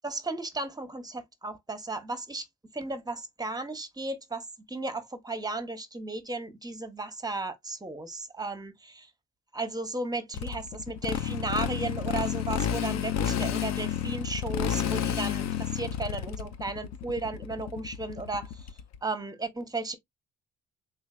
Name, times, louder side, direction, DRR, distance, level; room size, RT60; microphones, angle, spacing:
voice 1, 0.0-2.5 2.7-9.1 9.5-18.7 19.0-20.0, right 2 dB, 15° right, 0.7 m, -35 dB
Motorcycle, 10.3-19.0, left 9 dB, 60° left, 0.5 m, -31 dB
3.6 x 3.2 x 2.3 m
cardioid pair, 90°, 30 cm